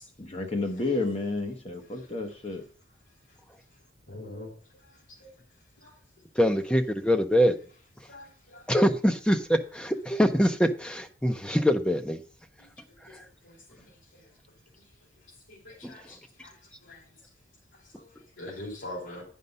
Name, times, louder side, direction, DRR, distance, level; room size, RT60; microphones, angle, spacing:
voice 1, 0.2-2.6, left 3 dB, 30° left, 4 dB, 1.0 m, -31 dB
voice 2, 4.1-4.5 8.1-8.2 15.5-16.0 16.9-17.0 18.4-19.2, left 1 dB, 75° left, -4 dB, 3.0 m, -40 dB
voice 3, 6.4-7.5 8.7-12.2 15.8-15.9, equal, 5° left, 6 dB, 0.6 m, -24 dB
9.2 x 5.5 x 5.4 m, 0.41 s
head